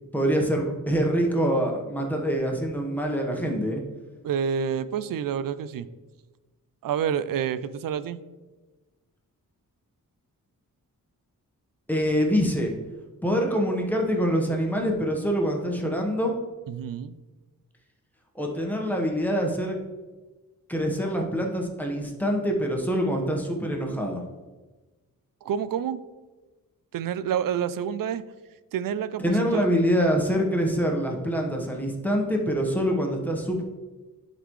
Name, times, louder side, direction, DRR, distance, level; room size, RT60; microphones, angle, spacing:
voice 1, 0.1-3.8 11.9-12.7 13.2-16.4 18.3-19.7 20.7-24.2 29.2-33.6, equal, 5° left, 1 dB, 1.1 m, -25 dB
voice 2, 4.2-5.9 6.8-8.2 16.7-17.2 25.4-26.0 26.9-28.2 28.7-29.7, right 8 dB, 70° right, 14 dB, 0.5 m, -28 dB
11.5 x 4.0 x 3.1 m, 1.2 s
wide cardioid pair, 100°, 34 cm